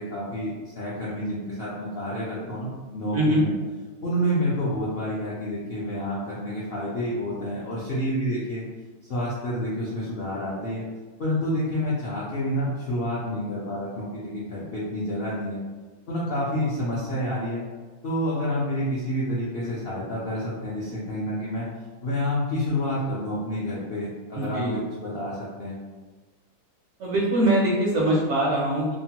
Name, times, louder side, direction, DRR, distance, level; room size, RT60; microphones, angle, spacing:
voice 1, 0.0-3.5 4.0-8.6 9.1-10.8 11.2-15.6 16.1-17.6 18.0-21.7 22.0-25.7, equal, 65° left, -8 dB, 0.5 m, -29 dB
voice 2, 24.3-24.8 27.0-29.0, right 1 dB, 65° right, -4 dB, 0.8 m, -22 dB
3.0 x 2.1 x 2.8 m, 1.4 s
omnidirectional pair, 1.7 m